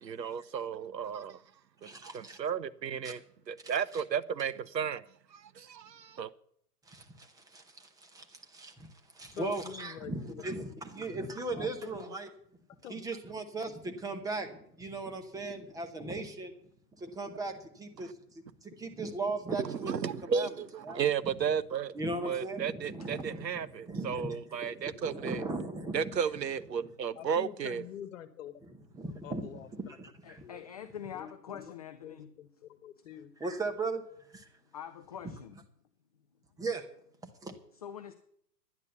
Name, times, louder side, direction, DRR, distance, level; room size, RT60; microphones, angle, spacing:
voice 1, 0.0-1.4 1.8-5.0 5.3-6.3 19.6-21.9 22.2-25.4 25.9-27.8, right 7 dB, 85° right, 0.8 m, -33 dB
voice 2, 1.8-2.4 3.0-3.1 3.6-4.0 6.9-8.9 9.1-12.3 12.9-16.5 17.0-18.1 18.6-20.5 20.8-21.3 21.9-23.5 23.9-24.4 25.0-26.1 28.7-30.4 33.4-34.0 34.3-34.5 36.6-36.8 37.4-37.5, right 3 dB, 5° right, 1.0 m, -38 dB
voice 3, 9.3-10.6 11.5-12.1 12.8-13.0 27.1-28.5 29.2-29.7 30.4-30.7 31.1-31.7 32.0-33.3, left 10 dB, 50° left, 1.5 m, -46 dB
voice 4, 30.2-32.3 34.7-35.6 37.7-38.1, left 9 dB, 25° left, 0.4 m, -44 dB
10.5 x 9.8 x 6.8 m
hypercardioid pair, 125°, 49 cm